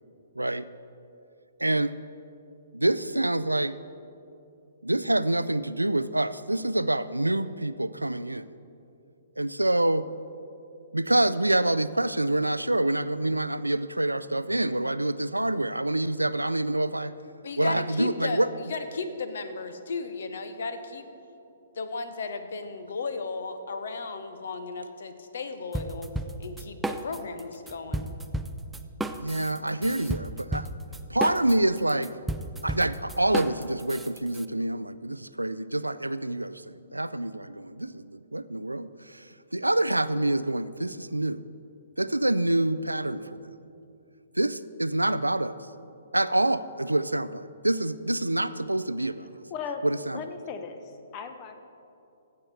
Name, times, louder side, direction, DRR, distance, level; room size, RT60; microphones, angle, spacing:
voice 1, 0.4-0.7 1.6-1.9 2.7-3.8 4.8-8.5 9.4-10.1 10.9-17.1 17.6-18.5 29.2-30.7 31.1-32.1 32.6-39.2 39.5-41.4 42.0-43.5 44.4-45.6 46.1-49.3 49.8-50.2, right 1 dB, 85° right, 15 dB, 0.3 m, -26 dB
voice 2, 17.4-21.1 21.7-26.1 26.4-28.1, left 4 dB, 55° left, 9 dB, 0.9 m, -35 dB
sound 1, 25.7-27.4 27.7-34.5, right 2 dB, 5° right, 0.4 m, -33 dB
voice 3, 49.5-49.9 50.1-51.5, left 5 dB, 30° left, 7 dB, 0.9 m, -37 dB
15.0 x 7.7 x 4.3 m, 2.7 s
figure-of-eight pair, 125°, 0 cm